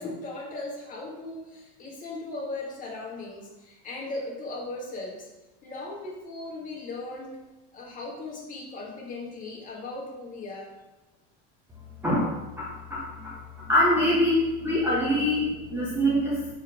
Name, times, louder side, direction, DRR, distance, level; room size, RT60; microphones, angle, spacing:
voice 1, 0.0-5.3 5.6-7.4 7.7-10.7, left 2 dB, 30° left, -3 dB, 1.7 m, -37 dB
voice 2, 12.0-16.5, left 1 dB, 10° right, -5 dB, 1.0 m, -25 dB
5.0 x 4.4 x 6.0 m, 1.1 s
cardioid pair, 155°, 29 cm